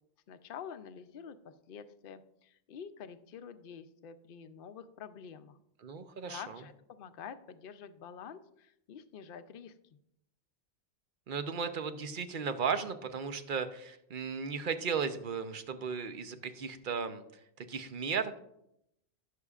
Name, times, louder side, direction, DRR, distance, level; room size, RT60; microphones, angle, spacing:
voice 1, 0.3-5.6 6.3-9.7, left 7 dB, 55° left, 10 dB, 0.8 m, -47 dB
voice 2, 5.8-6.6 11.3-17.2 17.6-18.4, right 6 dB, 50° right, 9 dB, 0.9 m, -35 dB
16.0 x 6.8 x 2.4 m, 0.78 s
omnidirectional pair, 1.2 m